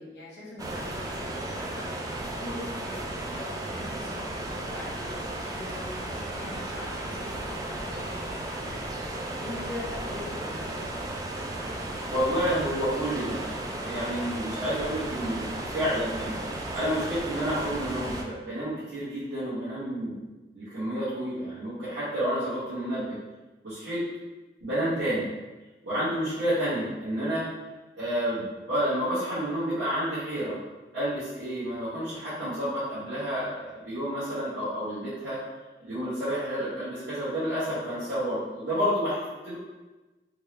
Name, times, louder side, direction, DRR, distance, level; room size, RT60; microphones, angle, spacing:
voice 1, 0.0-5.1 5.5-11.0, left 2 dB, 75° left, -6 dB, 0.9 m, -42 dB
sound 1, 0.6-18.2, right 1 dB, 20° right, 0.3 m, -34 dB
voice 2, 12.1-13.4 13.8-16.4 16.7-20.2 20.5-23.2 23.6-24.0 24.6-25.3 25.8-27.4 28.0-30.6 30.9-35.4 35.8-39.5, equal, 80° right, -15 dB, 1.5 m, -30 dB
3.6 x 2.1 x 3.0 m, 1.2 s
head